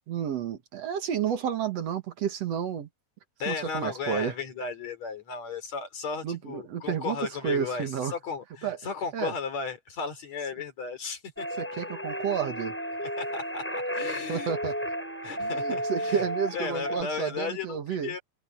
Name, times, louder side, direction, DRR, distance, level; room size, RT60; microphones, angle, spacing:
voice 1, 0.1-2.9 3.5-4.3 6.2-7.2 7.4-8.1 8.6-8.8 9.1-9.3 11.6-12.7 14.3-14.7 15.4-18.1, right 8 dB, 60° right, 2.5 m, -31 dB
voice 2, 3.4-11.6 13.0-14.7 15.2-16.2 16.5-18.2, left 5 dB, 65° left, 5.0 m, -35 dB
sound 1, 11.4-17.0, equal, 5° left, 6.4 m, -33 dB
omnidirectional pair, 3.3 m